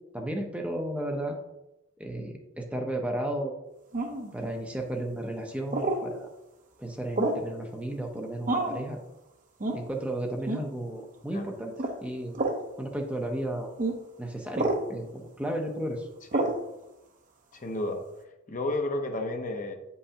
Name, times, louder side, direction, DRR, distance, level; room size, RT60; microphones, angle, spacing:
voice 1, 0.1-1.4 2.0-3.5 4.3-6.3 6.8-9.0 9.7-11.7 12.0-12.4 12.8-13.7 14.2-16.1, right 1 dB, 5° right, 2 dB, 0.6 m, -33 dB
sound 1, 3.9-4.3 5.7-6.0 7.2-7.5 8.5-8.8 9.6-9.8 10.5-10.7 11.8-12.0 12.3-12.6 13.8-14.0 14.5-14.8 16.3-16.6, right 2 dB, 40° right, 0.8 m, -28 dB
voice 2, 17.5-18.0 18.5-19.7, left 2 dB, 35° left, 4 dB, 0.8 m, -31 dB
9.1 x 5.6 x 2.8 m, 0.94 s
head